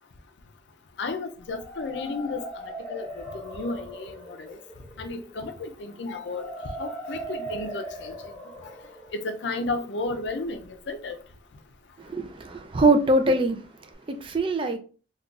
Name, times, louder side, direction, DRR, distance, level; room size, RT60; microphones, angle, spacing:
voice 1, 1.0-4.6 5.0-8.1 9.1-11.2, left 3 dB, 80° left, 0.5 m, -33 dB
sound 1, 1.4-11.2, right 1 dB, 25° left, 1.3 m, -40 dB
voice 2, 12.0-13.6 14.1-14.8, right 2 dB, 30° right, 0.4 m, -22 dB
3.7 x 2.4 x 2.3 m
head